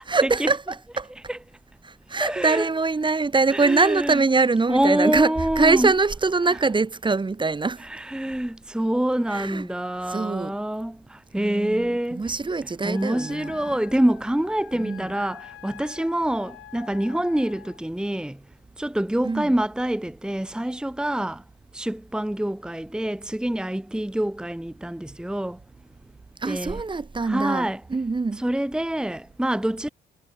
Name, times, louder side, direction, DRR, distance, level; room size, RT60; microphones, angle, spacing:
voice 1, 0.1-1.1 1.8-7.9 9.3-9.7 10.0-10.6 11.4-13.6 14.7-15.1 19.2-19.5 26.4-28.4, right 3 dB, 25° right, 1.8 m, -23 dB
voice 2, 2.2-2.7 3.5-4.1 4.7-5.9 7.8-12.5 12.8-18.4 18.8-21.4 21.7-25.6 26.4-26.8 27.2-27.8 28.4-29.9, right 1 dB, 5° right, 1.4 m, -26 dB
Wind instrument woodwind instrument, 12.9-17.8, left 12 dB, 75° left, 6.5 m, -46 dB
cardioid pair, 90°, 20 cm